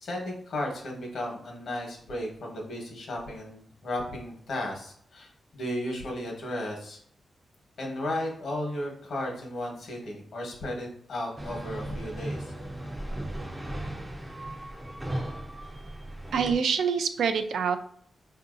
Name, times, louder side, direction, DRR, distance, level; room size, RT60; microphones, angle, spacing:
voice 1, 0.0-7.0 7.8-12.5, left 1 dB, 60° left, 0 dB, 1.0 m, -34 dB
sound 1, 11.4-16.5, right 1 dB, 10° right, 0.4 m, -36 dB
voice 2, 16.3-17.8, right 6 dB, 75° right, 8 dB, 0.3 m, -25 dB
4.6 x 2.6 x 2.4 m, 0.64 s
wide cardioid pair, 175°, 0 cm